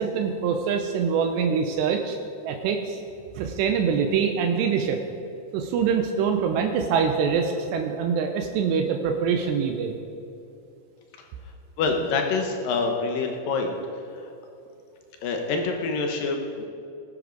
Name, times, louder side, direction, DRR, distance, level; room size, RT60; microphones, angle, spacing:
voice 1, 0.0-2.2 2.5-3.0 3.4-5.0 5.5-10.0, right 6 dB, 85° right, 5 dB, 2.9 m, -24 dB
voice 2, 11.8-13.8 15.2-16.6, left 4 dB, 70° left, 3 dB, 2.3 m, -26 dB
19.5 x 10.5 x 3.9 m, 2.6 s
omnidirectional pair, 4.9 m